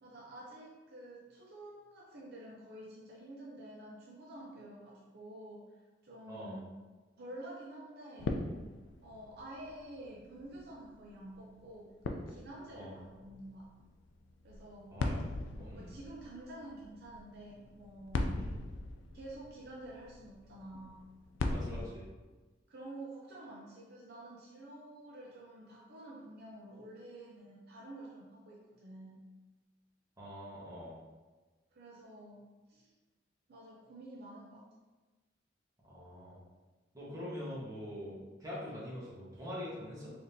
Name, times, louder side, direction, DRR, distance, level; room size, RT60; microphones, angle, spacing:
voice 1, 0.0-6.7 7.2-8.4 9.0-13.7 14.4-15.0 15.8-18.5 19.1-21.1 21.4-21.9 22.7-29.2 31.7-32.9 33.5-34.6 37.1-37.3 38.0-38.2, right 1 dB, 55° right, -3 dB, 0.5 m, -49 dB
voice 2, 6.3-6.6 12.7-12.9 14.9-15.2 15.5-15.9 18.3-18.6 21.5-22.0 30.2-31.0 35.8-36.4 36.9-40.1, equal, 20° right, -7 dB, 1.3 m, -44 dB
sound 1, 8.2-21.9, left 2 dB, 80° left, 0.4 m, -41 dB
4.0 x 3.5 x 2.7 m, 1.2 s
head